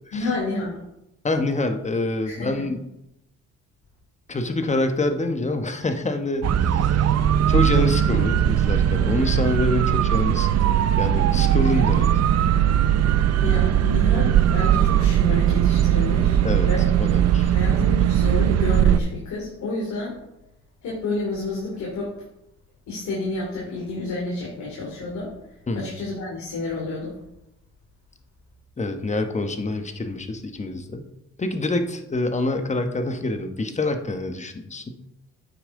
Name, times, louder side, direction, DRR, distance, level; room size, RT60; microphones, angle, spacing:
voice 1, 0.1-0.8 2.3-2.6 11.6-11.8 12.9-16.9 17.5-20.1 20.8-22.1 22.9-25.3 25.7-27.2, left 2 dB, 70° left, -4 dB, 2.8 m, -30 dB
voice 2, 1.2-2.8 4.3-7.0 7.5-12.1 16.4-16.7 17.0-17.5 25.7-25.9 28.8-31.1 31.4-35.0, left 2 dB, 25° left, 7 dB, 1.1 m, -26 dB
sound 1, 6.4-19.0, right 10 dB, 55° right, 0.6 m, -19 dB
9.1 x 7.0 x 3.8 m, 0.87 s
cardioid pair, 90°, 30 cm